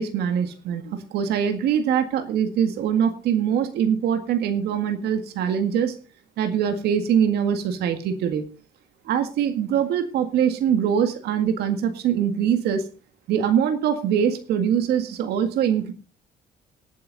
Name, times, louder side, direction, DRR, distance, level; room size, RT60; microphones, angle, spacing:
voice 1, 0.0-6.0 6.4-8.4 9.1-12.8 13.3-15.9, right 8 dB, 75° right, 7 dB, 1.9 m, -23 dB
18.0 x 8.5 x 4.0 m, 0.34 s
cardioid pair, 110°, 17 cm